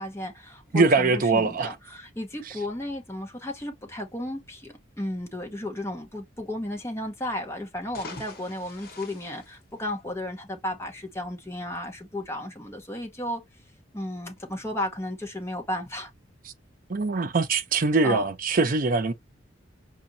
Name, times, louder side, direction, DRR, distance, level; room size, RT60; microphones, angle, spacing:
voice 1, 0.0-13.4 13.9-16.1 18.0-18.2, left 1 dB, 15° left, 1.0 m, -34 dB
voice 2, 0.7-1.7 16.9-19.1, right 3 dB, 45° right, 0.6 m, -22 dB
sound 1, 7.7-10.3, left 2 dB, 50° left, 1.3 m, -45 dB
5.1 x 2.5 x 2.7 m
head